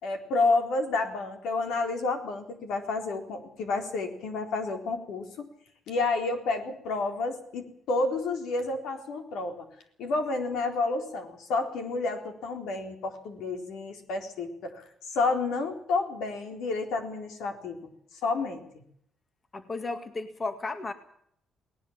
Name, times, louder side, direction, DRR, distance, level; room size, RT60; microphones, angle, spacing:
voice 1, 0.0-5.5 5.9-9.7 10.0-14.8 15.1-17.8 18.2-18.8, left 3 dB, 85° left, 5 dB, 3.9 m, -30 dB
voice 2, 19.5-20.9, left 3 dB, 30° left, 8 dB, 2.0 m, -34 dB
19.0 x 19.0 x 7.3 m, 0.69 s
cardioid pair, 90°, 0 cm